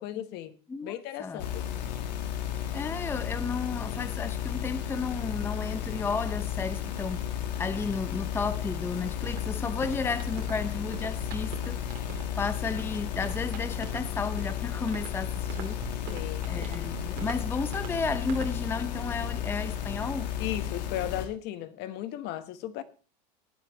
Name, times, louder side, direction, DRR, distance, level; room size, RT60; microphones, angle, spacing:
voice 1, 0.0-0.6 0.8-1.6 16.1-16.5 20.4-22.8, left 12 dB, 50° left, 1.3 m, -36 dB
sound 1, 1.4-21.2, left 10 dB, 80° left, 1.7 m, -33 dB
voice 2, 2.7-7.3 7.6-11.8 12.4-15.8 16.5-20.3, left 4 dB, 10° left, 0.5 m, -33 dB
sound 2, 8.9-18.6, right 9 dB, 60° right, 2.9 m, -45 dB
19.0 x 9.2 x 3.1 m
supercardioid pair, 110°, 21 cm